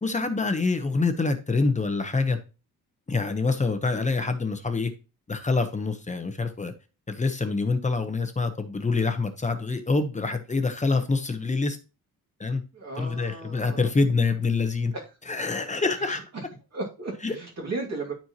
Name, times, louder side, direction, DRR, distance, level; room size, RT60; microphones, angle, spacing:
voice 1, 0.0-2.4 3.1-4.9 5.3-6.7 7.1-11.8 12.4-12.6 13.0-14.9 15.3-16.2 17.2-17.3, left 3 dB, 20° left, 0.9 m, -26 dB
voice 2, 12.7-13.9 14.9-15.0 16.0-16.4 16.7-18.1, right 2 dB, 45° right, 2.4 m, -35 dB
12.5 x 4.5 x 3.0 m
wide cardioid pair, 145°, 37 cm